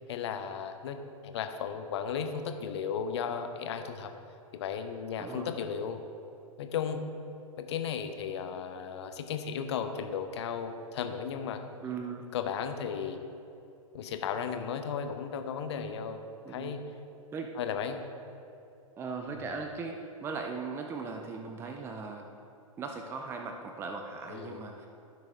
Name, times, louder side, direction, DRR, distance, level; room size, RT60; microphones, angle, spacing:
voice 1, 0.1-4.1 4.5-6.0 6.6-7.0 7.6-11.6 12.3-13.2 13.9-16.8 17.5-18.0 19.3-19.5 24.3-24.9, left 7 dB, 50° left, 7 dB, 0.9 m, -35 dB
voice 2, 5.2-5.5 11.8-12.3 16.4-16.8 17.3-17.5 19.0-22.3 22.8-24.9, right 4 dB, 15° right, 4 dB, 0.5 m, -38 dB
15.0 x 6.3 x 3.6 m, 2.6 s
figure-of-eight pair, 110°, 18 cm